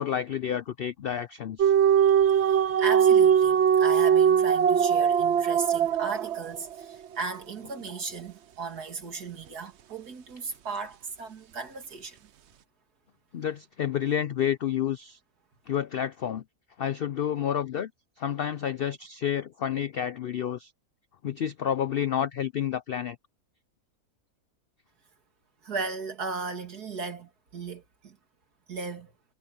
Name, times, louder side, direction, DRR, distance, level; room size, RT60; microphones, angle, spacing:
voice 1, 0.0-1.7 13.3-15.2 15.7-16.4 16.8-17.9 18.2-20.7 21.2-23.2, left 9 dB, 75° left, 0.5 m, -29 dB
sound 1, 1.6-6.8, right 8 dB, 55° right, 0.9 m, -21 dB
voice 2, 2.0-12.3 25.6-28.2 28.7-29.1, right 4 dB, 80° right, 2.8 m, -36 dB
omnidirectional pair, 1.6 m